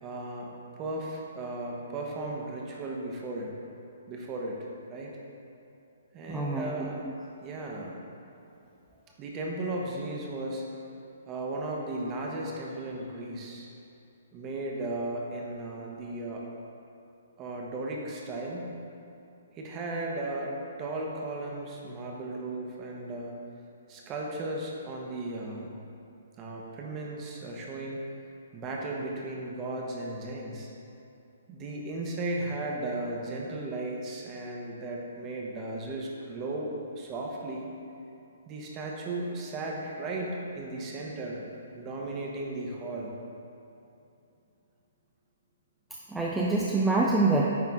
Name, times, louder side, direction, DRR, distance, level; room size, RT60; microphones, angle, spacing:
voice 1, 0.0-3.6 4.1-4.6 4.9-5.1 6.1-7.1 7.4-8.0 9.2-10.6 11.3-13.7 14.3-16.4 17.4-18.7 19.5-23.4 23.9-25.7 26.4-28.0 28.5-30.7 31.5-37.7 38.5-41.5 41.7-43.1, right 2 dB, 25° right, -2 dB, 1.1 m, -35 dB
voice 2, 6.3-6.9 46.1-47.5, right 3 dB, 5° right, -4 dB, 0.5 m, -25 dB
9.3 x 3.8 x 3.6 m, 2.7 s
hypercardioid pair, 130°, 0 cm